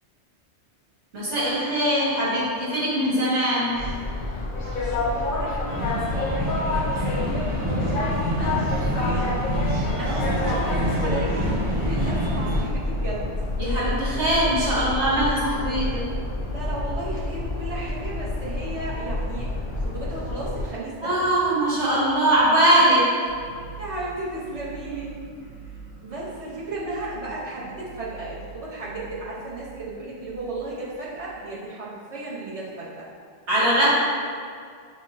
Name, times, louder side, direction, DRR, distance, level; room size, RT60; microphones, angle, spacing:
voice 1, 1.1-3.7 13.6-16.0 21.0-23.1 33.5-33.9, right 1 dB, 80° right, -8 dB, 1.6 m, -21 dB
sound 1, 3.7-20.7, left 2 dB, 55° left, 0.7 m, -28 dB
voice 2, 4.6-13.3 16.5-19.5 19.7-21.1 23.8-25.2 26.0-33.1, right 2 dB, 35° right, -8 dB, 0.8 m, -34 dB
sound 2, 5.7-12.6, equal, 10° right, 0.5 m, -27 dB
sound 3, 23.3-31.3, right 5 dB, 55° right, 2.0 m, -44 dB
5.6 x 2.3 x 2.6 m, 2.1 s
omnidirectional pair, 1.2 m